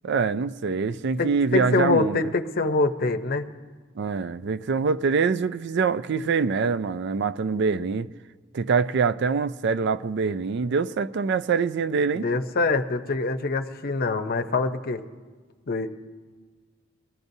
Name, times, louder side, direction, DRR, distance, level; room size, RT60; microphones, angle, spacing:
voice 1, 0.0-2.2 4.0-8.1 8.5-12.3, right 5 dB, 60° right, 0.4 m, -24 dB
voice 2, 1.2-3.5 12.1-15.0 15.7-15.9, left 3 dB, 50° left, 0.7 m, -25 dB
22.5 x 15.0 x 2.7 m
head